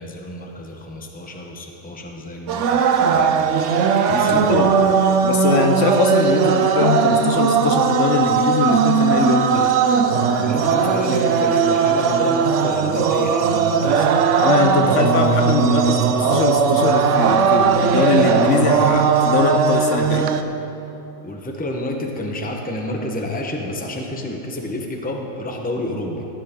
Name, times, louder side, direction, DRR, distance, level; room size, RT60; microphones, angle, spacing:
voice 1, 0.0-3.5 4.1-4.9 10.4-14.1 21.2-26.3, left 1 dB, 10° left, 1 dB, 0.8 m, -29 dB
sound 1, 2.5-20.4, right 6 dB, 70° right, 0.9 m, -18 dB
voice 2, 4.1-4.8 5.2-9.8 14.4-20.3, left 5 dB, 65° left, 4 dB, 1.0 m, -21 dB
16.0 x 10.5 x 3.7 m, 2.9 s
omnidirectional pair, 1.4 m